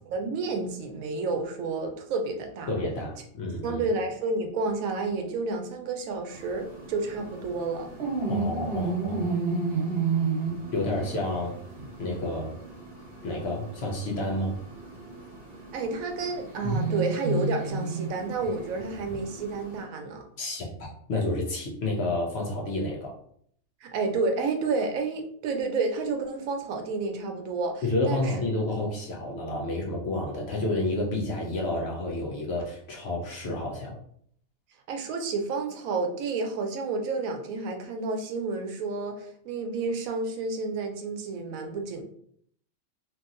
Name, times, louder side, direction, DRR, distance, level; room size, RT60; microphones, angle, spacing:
voice 1, 0.1-2.7 3.6-7.9 15.7-20.2 23.8-28.3 34.9-42.0, right 3 dB, 80° right, 4 dB, 1.0 m, -30 dB
voice 2, 2.7-3.8 8.3-9.3 10.7-11.5 12.0-12.5 13.2-14.6 20.4-23.1 27.8-34.0, left 2 dB, 60° left, -1 dB, 0.8 m, -30 dB
sound 1, 6.3-19.8, right 4 dB, 50° right, 1.0 m, -32 dB
2.9 x 2.6 x 2.4 m, 0.64 s
omnidirectional pair, 1.4 m